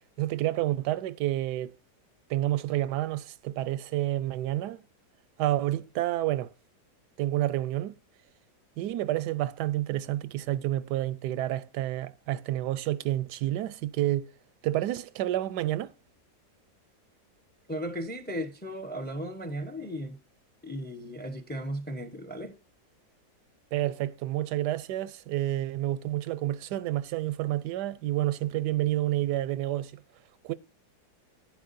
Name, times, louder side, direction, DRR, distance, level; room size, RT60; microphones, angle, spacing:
voice 1, 0.2-1.8 2.3-4.8 5.4-6.5 7.2-7.9 8.8-14.3 14.6-15.9 23.7-30.0 30.4-30.5, right 14 dB, 85° right, 1.2 m, -29 dB
voice 2, 17.7-20.2 20.6-22.6, equal, 10° left, 0.6 m, -36 dB
10.5 x 10.0 x 2.6 m
omnidirectional pair, 1.7 m